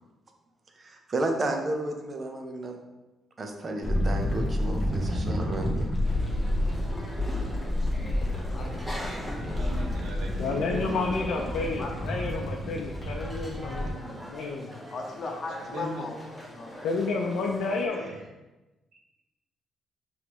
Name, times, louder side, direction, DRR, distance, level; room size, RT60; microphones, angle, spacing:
voice 1, 0.8-2.8 3.4-5.9, right 2 dB, 35° right, 3 dB, 0.7 m, -32 dB
sound 1, 3.8-13.9, left 1 dB, 10° left, 1.1 m, -30 dB
sound 2, 6.0-17.9, equal, 10° right, 1.0 m, -44 dB
voice 2, 7.7-9.7 10.9-12.2 14.9-16.2 16.5-16.7, left 3 dB, 45° left, -1 dB, 0.8 m, -39 dB
voice 3, 9.4-11.1 13.6-14.2 15.6-16.1 17.9-18.2, right 2 dB, 70° right, 0 dB, 0.9 m, -40 dB
voice 4, 10.4-14.8 16.8-18.1, left 3 dB, 80° left, 0 dB, 0.5 m, -31 dB
5.1 x 3.1 x 3.0 m, 1.1 s
cardioid pair, 90°, 0 cm